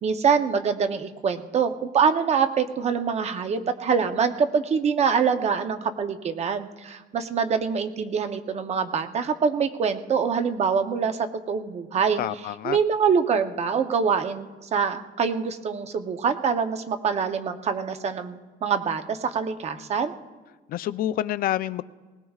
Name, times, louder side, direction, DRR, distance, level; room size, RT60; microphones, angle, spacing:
voice 1, 0.0-11.2 11.5-20.1, right 6 dB, 35° right, 8 dB, 0.7 m, -25 dB
voice 2, 12.2-12.8 20.7-21.8, left 13 dB, 50° left, 14 dB, 0.4 m, -27 dB
20.0 x 19.0 x 2.4 m, 1.4 s
cardioid pair, 160°, 19 cm